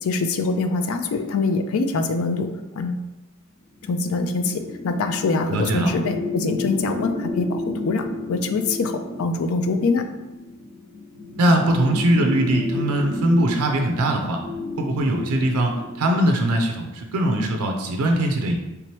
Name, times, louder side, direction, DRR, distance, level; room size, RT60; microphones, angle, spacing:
voice 1, 0.0-2.5 2.8-3.1 3.9-10.0, left 3 dB, 65° left, 7 dB, 0.4 m, -24 dB
sound 1, 3.7-16.2, left 2 dB, ahead, 1.1 m, -32 dB
voice 2, 5.5-5.9 11.4-14.4 14.8-18.6, right 1 dB, 90° right, 3 dB, 0.5 m, -21 dB
3.4 x 2.9 x 3.0 m, 0.99 s
head